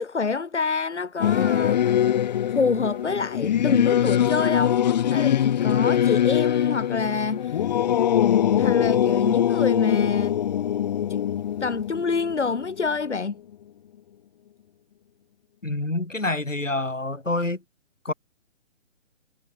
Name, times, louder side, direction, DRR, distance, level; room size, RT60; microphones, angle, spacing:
voice 1, 0.0-2.1 2.5-4.8 5.1-7.8 8.5-10.4 11.1-11.2 11.6-13.4, left 4 dB, 65° left, 3.6 m, -27 dB
Singing / Musical instrument, 1.2-13.1, left 10 dB, 35° left, 2.5 m, -22 dB
voice 2, 15.6-17.6 18.0-18.1, left 2 dB, 85° left, 8.0 m, -27 dB
figure-of-eight pair, 145°, 37 cm